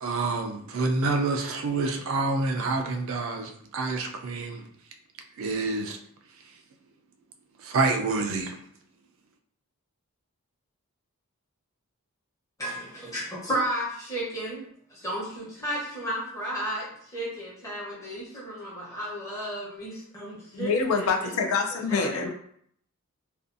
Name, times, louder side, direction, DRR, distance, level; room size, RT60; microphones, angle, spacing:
voice 1, 0.0-4.7 5.4-6.0 7.6-8.6, right 3 dB, 65° right, 0.3 m, -27 dB
voice 2, 12.6-20.7 20.9-21.3 21.9-22.3, right 1 dB, 15° left, 0.8 m, -33 dB
voice 3, 20.5-22.3, left 4 dB, 70° left, 0.4 m, -26 dB
2.5 x 2.3 x 2.5 m
head